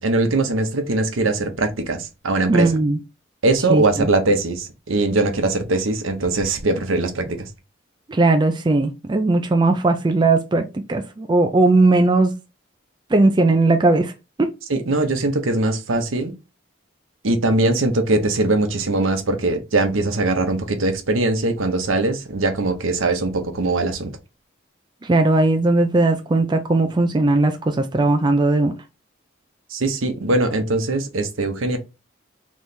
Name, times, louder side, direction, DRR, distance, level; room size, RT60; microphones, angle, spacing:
voice 1, 0.0-2.7 3.4-7.5 14.7-16.3 17.2-24.2 29.7-31.8, right 2 dB, 80° right, 0.8 m, -21 dB
voice 2, 2.5-3.0 3.7-4.1 8.1-12.3 13.1-14.1 14.4-14.5 25.0-28.7, right 2 dB, 20° right, 0.3 m, -18 dB
3.3 x 3.1 x 4.1 m
head